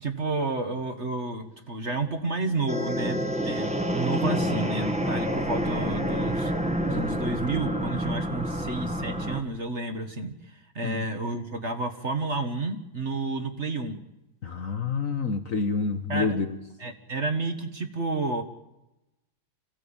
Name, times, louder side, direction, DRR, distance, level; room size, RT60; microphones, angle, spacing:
voice 1, 0.0-6.5 6.9-14.0 16.1-16.4 16.8-18.4, right 3 dB, 35° right, 1.7 m, -31 dB
sound 1, 1.9-9.4, equal, 5° right, 1.4 m, -28 dB
voice 2, 14.4-16.6, left 4 dB, 45° left, 1.4 m, -28 dB
27.0 x 16.0 x 8.8 m
omnidirectional pair, 2.2 m